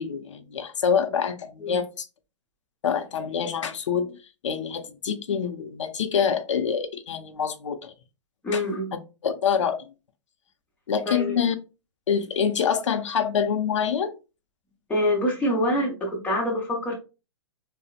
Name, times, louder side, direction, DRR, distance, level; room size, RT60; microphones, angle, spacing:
voice 1, 0.0-2.1 2.8-4.2 4.4-7.9 8.5-8.6 9.2-9.9 10.9-11.6 12.1-14.1, left 7 dB, 75° left, 0.5 m, -26 dB
voice 2, 8.4-8.9 11.1-11.4 14.9-16.9, left 1 dB, 10° left, 0.7 m, -25 dB
2.9 x 2.0 x 2.4 m
hypercardioid pair, 130°, 16 cm